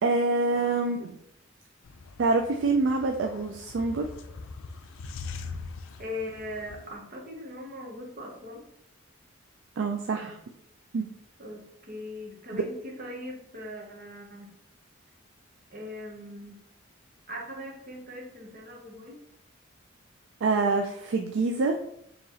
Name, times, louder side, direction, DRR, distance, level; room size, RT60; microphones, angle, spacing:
voice 1, 0.0-1.2 2.2-4.1 9.8-10.4 10.9-11.1 20.4-21.8, right 3 dB, 60° right, 3 dB, 0.3 m, -26 dB
sound 1, 1.8-6.9, left 4 dB, 75° left, 0.4 m, -42 dB
voice 2, 6.0-8.6 11.4-14.5 15.7-16.6 17.3-19.2, left 1 dB, 45° right, 0 dB, 0.9 m, -40 dB
4.6 x 3.0 x 2.8 m, 0.75 s
head